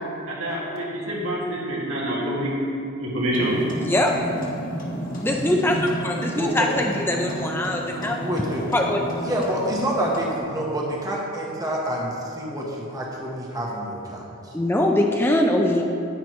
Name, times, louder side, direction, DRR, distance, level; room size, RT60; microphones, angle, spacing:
voice 1, 0.3-2.5 3.0-3.6, right 1 dB, 75° right, -5 dB, 2.2 m, -26 dB
sound 1, 3.3-10.4, right 1 dB, 40° left, 1.5 m, -32 dB
voice 2, 3.8-4.2 5.2-8.2 8.7-9.0 14.5-15.8, left 1 dB, 10° left, 1 dB, 0.5 m, -22 dB
voice 3, 6.2-6.7 8.2-8.6 9.2-14.5, right 1 dB, 15° right, -3 dB, 1.1 m, -28 dB
10.5 x 9.6 x 3.1 m, 2.6 s
head